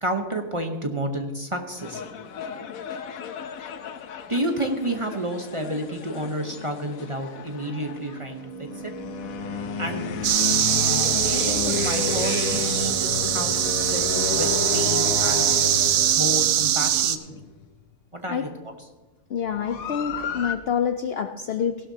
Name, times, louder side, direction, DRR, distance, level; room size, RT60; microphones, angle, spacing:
voice 1, 0.0-2.0 4.3-8.9 9.8-10.1 11.2-14.0 14.3-15.5 16.2-17.4 18.1-18.5, right 1 dB, 25° right, 4 dB, 0.8 m, -30 dB
sound 1, 1.8-17.4 19.5-20.6, left 7 dB, 80° left, 1.2 m, -32 dB
sound 2, 7.5-17.1, right 13 dB, 60° right, 0.6 m, -40 dB
sound 3, 10.2-17.2, right 11 dB, 90° right, 1.1 m, -22 dB
voice 2, 19.3-21.9, left 7 dB, 60° left, 7 dB, 0.6 m, -27 dB
16.0 x 12.5 x 2.8 m, 1.2 s
omnidirectional pair, 1.5 m